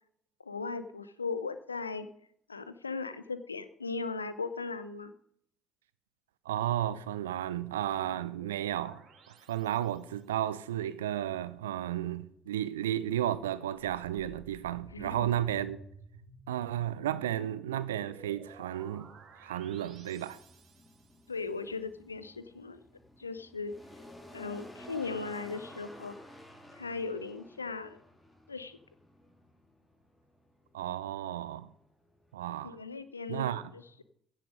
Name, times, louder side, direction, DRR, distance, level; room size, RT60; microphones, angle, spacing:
voice 1, 0.4-2.1 2.5-5.1 14.9-15.3 21.3-22.8 23.2-23.7 24.3-26.2 26.7-28.0 28.5-28.8 32.6-34.0, left 4 dB, 85° left, 0.5 m, -38 dB
voice 2, 6.5-9.0 9.5-15.8 16.5-20.4 30.7-31.7 32.3-32.8 33.3-33.6, right 12 dB, 80° right, 0.6 m, -33 dB
sound 1, 7.2-10.4 13.7-21.4, right 4 dB, 50° right, 2.1 m, -55 dB
sound 2, 18.4-32.9, left 1 dB, 15° left, 3.4 m, -53 dB
15.5 x 7.2 x 5.1 m
figure-of-eight pair, 50°, 0 cm